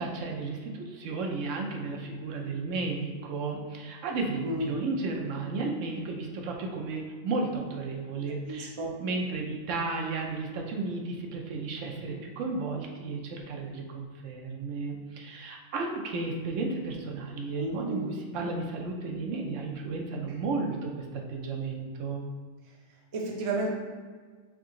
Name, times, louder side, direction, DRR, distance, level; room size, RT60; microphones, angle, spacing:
voice 1, 0.0-8.7 9.0-22.2, right 3 dB, 75° right, 1 dB, 0.9 m, -33 dB
voice 2, 4.4-4.8 8.5-9.0 17.6-18.1 23.1-23.7, right 2 dB, 35° right, -2 dB, 0.5 m, -32 dB
3.7 x 2.8 x 3.6 m, 1.5 s
omnidirectional pair, 1.3 m